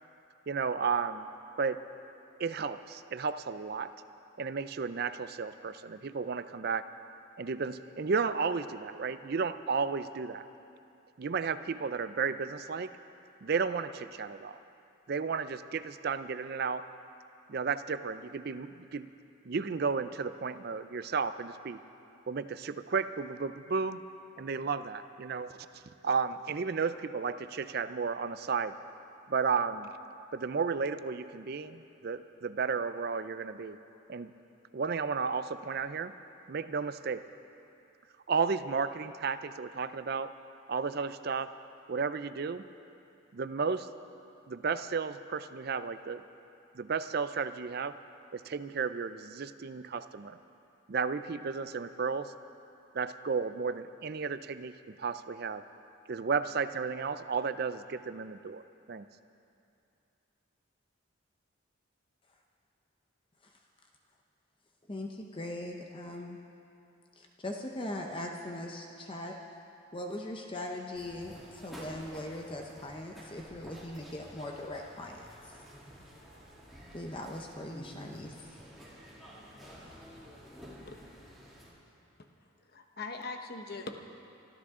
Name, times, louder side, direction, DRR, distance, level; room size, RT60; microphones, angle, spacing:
voice 1, 0.5-1.3 1.6-1.8 2.4-3.9 4.4-6.9 7.4-10.5 11.2-12.9 13.4-14.6 15.1-16.9 17.5-19.1 19.5-21.8 22.3-24.0 24.4-25.7 26.0-28.7 29.3-29.9 30.3-33.8 34.1-34.3 34.7-36.1 36.5-37.3 38.3-40.3 40.7-41.5 41.9-42.7 43.3-43.9 44.5-46.2 46.7-48.0 48.3-50.4 50.9-52.3 52.9-55.6 56.1-58.6 58.9-59.1, right 5 dB, 50° right, 12 dB, 0.4 m, -33 dB
voice 2, 64.9-66.4 67.2-69.4 69.9-75.6 76.9-78.4, left 1 dB, 25° left, 2 dB, 0.7 m, -40 dB
sound 1, 70.9-81.7, equal, ahead, 2.9 m, -51 dB
voice 3, 82.6-84.0, left 3 dB, 50° left, 5 dB, 1.0 m, -41 dB
24.5 x 13.0 x 3.7 m, 2.7 s
head